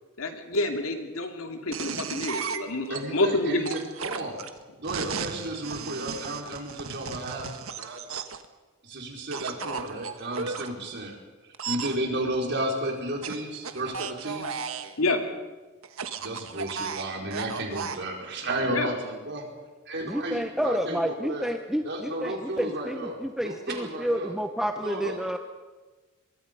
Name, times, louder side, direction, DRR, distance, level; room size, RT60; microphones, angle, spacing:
voice 1, 0.2-3.7 15.0-15.3 18.7-18.9, left 2 dB, 80° left, 4 dB, 2.6 m, -28 dB
sound 1, 1.7-3.0 3.6-8.5 9.3-10.7 11.5-12.0 13.2-14.9 15.8-18.0, right 5 dB, 80° right, 1.4 m, -35 dB
voice 2, 2.9-4.4 4.8-7.5 7.8-8.0 8.8-11.2 11.7-14.6 16.2-19.5 19.9-21.5 21.8-24.3 24.8-25.2, right 1 dB, 55° right, 0 dB, 4.9 m, -33 dB
voice 3, 20.1-25.4, equal, ahead, 6 dB, 0.8 m, -30 dB
24.5 x 22.0 x 5.4 m, 1.3 s
head